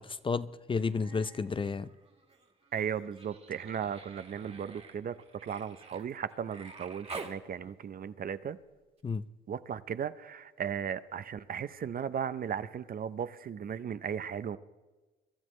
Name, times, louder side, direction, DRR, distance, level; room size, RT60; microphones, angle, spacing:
voice 1, 0.0-1.9 9.0-9.3, left 4 dB, 25° left, 14 dB, 0.5 m, -32 dB
Human voice, 0.7-1.5 1.8-7.4 9.0-9.1, right 3 dB, 30° right, 1.7 m, -49 dB
voice 2, 2.7-5.1 5.4-8.6 9.5-14.6, right 8 dB, 45° right, 14 dB, 0.6 m, -36 dB
23.0 x 12.5 x 3.2 m, 1.2 s
cardioid pair, 90°, 20 cm